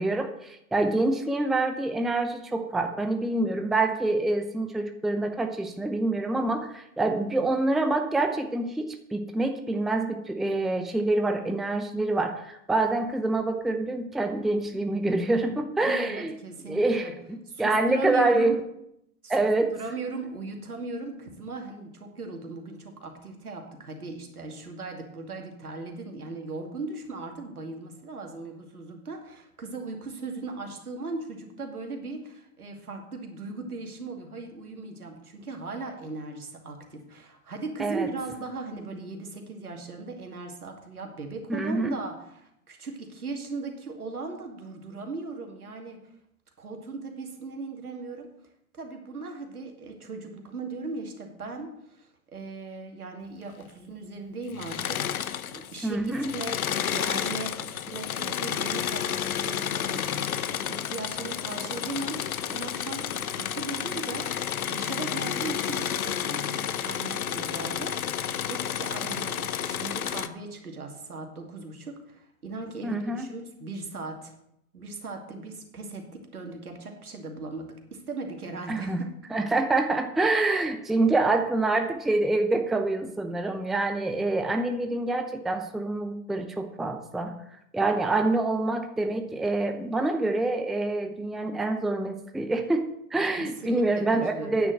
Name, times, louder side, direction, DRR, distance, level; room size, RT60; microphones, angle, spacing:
voice 1, 0.0-16.3 16.6-18.6 19.3-19.7 37.8-38.1 41.5-42.0 55.8-56.3 72.8-73.3 78.7-79.0 79.3-87.4 87.7-94.7, right 2 dB, ahead, 6 dB, 0.6 m, -26 dB
voice 2, 15.8-17.1 17.5-18.6 19.2-19.4 19.7-46.0 46.6-48.3 48.7-64.3 64.7-68.0 68.5-74.3 74.7-78.9 93.4-94.6, right 3 dB, 80° right, 3 dB, 2.5 m, -38 dB
Engine / Mechanisms, 54.5-55.8 56.1-70.3, left 9 dB, 75° left, 0.9 m, -31 dB
9.7 x 6.9 x 7.7 m, 0.79 s
figure-of-eight pair, 105°, 44 cm